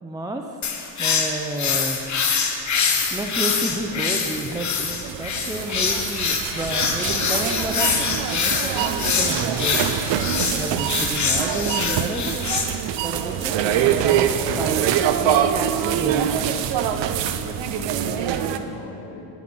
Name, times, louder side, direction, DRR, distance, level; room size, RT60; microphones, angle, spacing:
voice 1, 0.0-0.6 1.0-2.0 3.1-10.0 10.5-12.5 13.0-16.3, right 1 dB, 10° right, 3 dB, 0.4 m, -31 dB
sound 1, 0.6-12.6, left 5 dB, 40° left, 1.1 m, -24 dB
sound 2, 3.4-18.6, right 9 dB, 90° right, 0.7 m, -24 dB
sound 3, 5.4-10.5, right 3 dB, 35° right, 1.3 m, -42 dB
voice 2, 16.7-19.3, left 3 dB, 70° left, -2 dB, 2.0 m, -39 dB
9.3 x 9.3 x 6.0 m, 2.7 s
cardioid pair, 135°, 43 cm